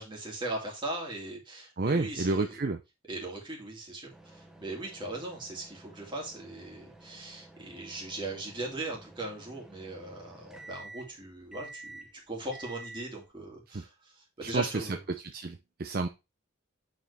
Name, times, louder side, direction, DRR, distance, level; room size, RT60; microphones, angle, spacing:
voice 1, 0.0-2.6 3.1-15.0, right 2 dB, 20° right, -1 dB, 2.4 m, -39 dB
voice 2, 1.8-2.8 13.7-13.8 14.4-16.1, right 3 dB, 45° right, 7 dB, 0.5 m, -31 dB
sound 1, 4.1-13.3, right 2 dB, ahead, 1.0 m, -51 dB
8.6 x 4.8 x 3.3 m, 0.26 s
head